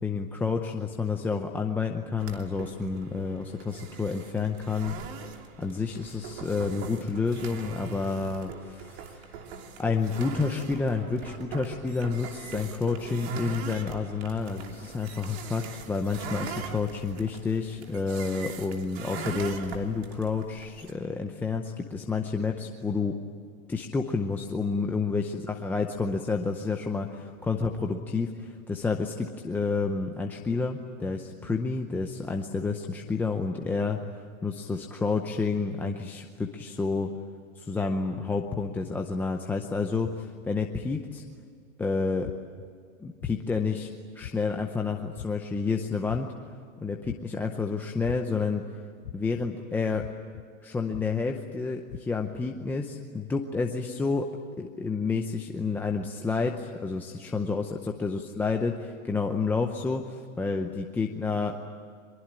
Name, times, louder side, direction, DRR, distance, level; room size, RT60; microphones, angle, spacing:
voice 1, 0.0-4.9 5.6-9.3 9.8-23.2 23.7-34.0 34.4-37.1 37.6-41.2 41.8-42.3 43.0-43.9 44.1-46.3 46.8-48.6 49.1-50.1 50.6-54.3 54.6-61.6, left 4 dB, 5° left, 2 dB, 0.6 m, -29 dB
sound 1, 2.2-20.9, right 5 dB, 50° right, 3.1 m, -41 dB
sound 2, 42.2-42.7 43.2-43.6 44.2-44.6 45.2-45.6 46.1-46.5 47.1-47.5 48.0-48.5 49.0-49.5 50.0-50.4 50.9-51.3 51.9-52.0, left 14 dB, 65° left, 0.8 m, -40 dB
23.5 x 22.5 x 8.9 m, 2.2 s
hypercardioid pair, 150°, 41 cm